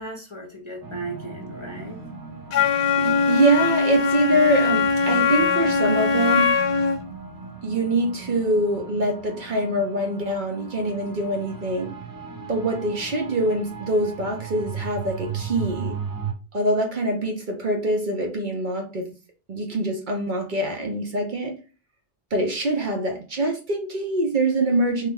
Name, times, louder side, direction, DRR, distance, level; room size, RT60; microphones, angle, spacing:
voice 1, 0.0-2.0, right 2 dB, 35° left, 0.6 m, -36 dB
sound 1, 0.8-16.3, right 5 dB, 30° right, 0.4 m, -37 dB
Wind instrument woodwind instrument, 2.5-7.0, left 5 dB, 75° left, 0.9 m, -21 dB
voice 2, 3.0-6.5 7.6-11.9 12.5-16.0 16.5-19.1 19.5-21.5 22.3-25.1, right 1 dB, 55° right, 0.7 m, -24 dB
3.2 x 2.0 x 3.3 m
omnidirectional pair, 1.1 m